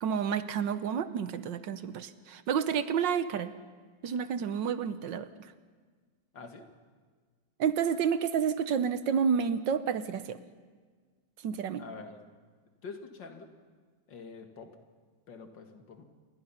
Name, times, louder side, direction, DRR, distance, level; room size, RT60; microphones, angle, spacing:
voice 1, 0.0-3.5 4.0-5.3 7.6-10.4 11.4-11.8, right 7 dB, 80° right, 12 dB, 1.6 m, -30 dB
voice 2, 6.3-6.7 11.8-12.2 12.8-13.5 14.1-14.7 15.3-16.0, left 4 dB, 75° left, 5 dB, 2.6 m, -45 dB
28.5 x 20.5 x 5.8 m, 1.5 s
omnidirectional pair, 2.0 m